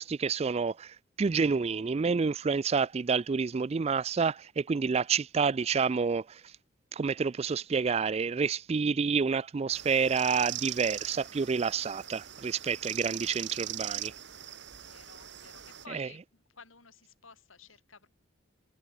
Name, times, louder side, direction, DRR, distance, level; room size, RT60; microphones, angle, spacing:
voice 1, 0.0-6.5 6.9-14.1 15.9-16.1, right 5 dB, 30° right, 0.3 m, -29 dB
sound 1, 9.7-15.9, right 11 dB, 60° right, 2.2 m, -40 dB
voice 2, 14.8-16.2 16.5-18.1, left 5 dB, 85° left, 5.3 m, -54 dB
head